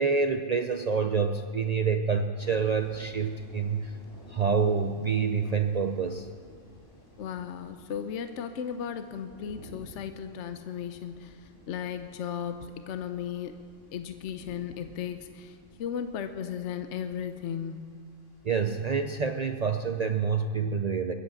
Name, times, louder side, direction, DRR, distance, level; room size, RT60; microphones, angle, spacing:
voice 1, 0.0-4.0 4.3-6.3 18.4-21.1, right 5 dB, 60° right, 6 dB, 0.4 m, -27 dB
sound 1, 2.4-20.2, left 1 dB, 40° left, 2.6 m, -54 dB
voice 2, 7.2-13.6 13.9-17.9, left 8 dB, 65° left, 9 dB, 0.9 m, -36 dB
21.5 x 8.2 x 7.0 m, 2.1 s
omnidirectional pair, 1.4 m